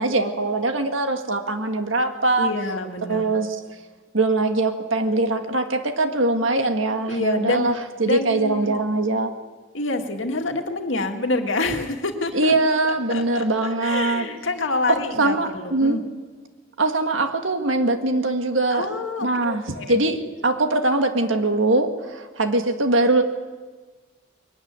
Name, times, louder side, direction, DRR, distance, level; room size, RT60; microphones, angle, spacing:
voice 1, 0.0-2.5 3.1-3.6 4.1-9.3 12.3-14.3 14.9-16.0 16.8-18.9 19.2-23.2, right 2 dB, 80° right, 6 dB, 1.9 m, -22 dB
voice 2, 2.4-3.3 7.1-7.7 8.0-8.7 9.7-12.5 12.8-16.0 18.7-20.0, left 2 dB, 75° left, 4 dB, 2.1 m, -27 dB
21.5 x 13.5 x 9.7 m, 1.4 s
head